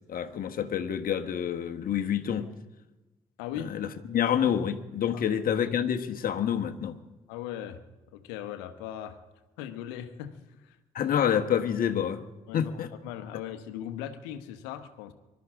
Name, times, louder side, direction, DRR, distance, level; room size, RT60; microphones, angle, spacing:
voice 1, 0.1-2.5 3.7-7.0 10.9-12.2 12.5-12.9, left 9 dB, 60° left, 6 dB, 1.4 m, -28 dB
voice 2, 3.4-3.9 5.1-5.2 7.3-7.8 8.1-9.2 9.6-10.8 12.5-15.1, left 10 dB, 85° left, 10 dB, 1.1 m, -39 dB
25.0 x 12.5 x 3.7 m, 1.1 s
hypercardioid pair, 45°, 17 cm